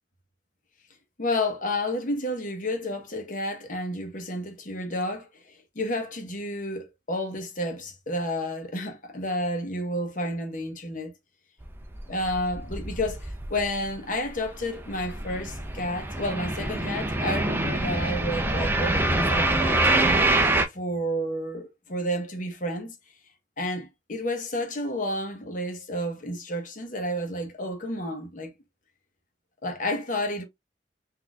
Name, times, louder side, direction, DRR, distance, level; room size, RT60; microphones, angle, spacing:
voice 1, 1.2-11.1 12.1-20.2 20.7-23.0 23.6-28.5 29.6-30.4, left 1 dB, 45° left, 1.0 m, -31 dB
sound 1, 11.6-13.9 14.2-20.7, right 2 dB, 10° right, 0.5 m, -25 dB
4.1 x 2.7 x 2.3 m
head